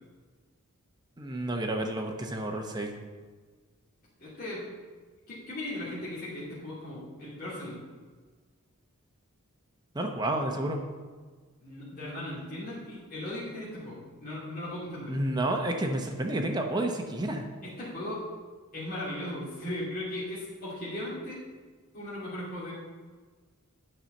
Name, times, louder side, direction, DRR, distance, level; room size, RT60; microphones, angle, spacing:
voice 1, 1.2-2.9 9.9-10.8 15.1-17.5, right 1 dB, 20° right, 3 dB, 0.9 m, -30 dB
voice 2, 4.2-4.7 5.3-7.8 11.6-15.1 17.6-18.2 18.7-21.4 21.9-22.7, left 1 dB, 40° left, -9 dB, 2.6 m, -37 dB
9.0 x 5.6 x 6.5 m, 1.4 s
head